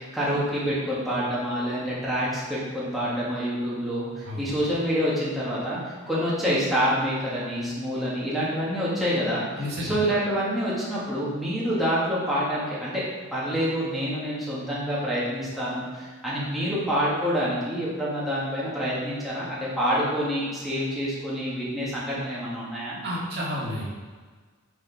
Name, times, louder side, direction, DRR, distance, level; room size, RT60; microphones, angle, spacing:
voice 1, 0.0-5.8 6.1-9.5 9.8-13.0 13.3-23.0, equal, ahead, -9 dB, 1.9 m, -27 dB
voice 2, 9.6-10.0 23.0-23.8, equal, 50° right, -6 dB, 2.6 m, -31 dB
6.6 x 6.5 x 4.7 m, 1.5 s
head